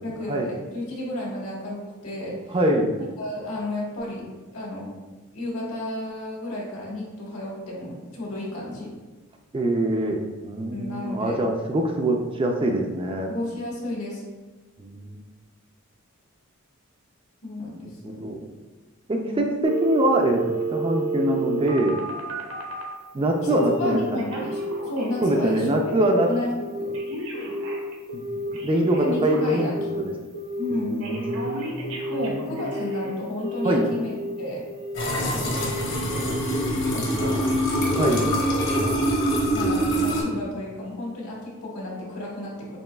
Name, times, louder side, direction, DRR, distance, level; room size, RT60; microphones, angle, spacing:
voice 1, 0.0-2.6 3.2-4.9 5.3-8.9 10.7-11.4 13.3-14.2 17.4-18.2 19.2-19.6 23.4-24.6 24.8-25.9 26.3-26.9 29.0-29.7 30.0-30.1 30.6-31.0 32.1-34.6 35.3-35.8 36.9-37.6 38.8-39.1 39.5-42.8, left 1 dB, 75° left, -3 dB, 1.4 m, -32 dB
voice 2, 2.5-2.9 9.5-13.3 14.8-15.2 18.0-18.4 19.1-20.4 20.7-22.0 23.1-24.2 25.2-26.3 28.1-28.2 28.6-29.7 30.7-32.6 33.6-33.8 37.9-38.2, right 1 dB, 25° right, 2 dB, 0.3 m, -24 dB
Telephone, 19.6-22.9 23.5-23.9 24.2-25.5 25.8-26.2 26.6-30.0 30.3-30.7 31.0-33.1 33.4-34.3 34.7-35.0 35.4-35.8 36.2-36.5 36.9-37.0, right 1 dB, 70° right, 0.9 m, -31 dB
sound 1, 34.9-40.2, equal, 55° left, 1.0 m, -24 dB
6.9 x 2.9 x 2.3 m, 1.2 s
head